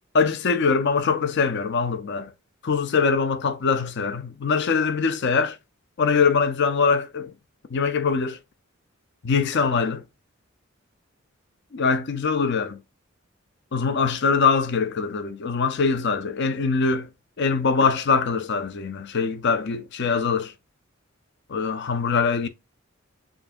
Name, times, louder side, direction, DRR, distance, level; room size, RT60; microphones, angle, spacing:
voice 1, 0.1-2.3 2.6-5.6 6.0-7.3 7.7-8.4 9.2-10.0 11.7-12.8 13.7-17.1 17.4-20.5 21.5-22.5, left 5 dB, 55° left, 0.5 m, -23 dB
7.1 x 2.8 x 2.5 m
head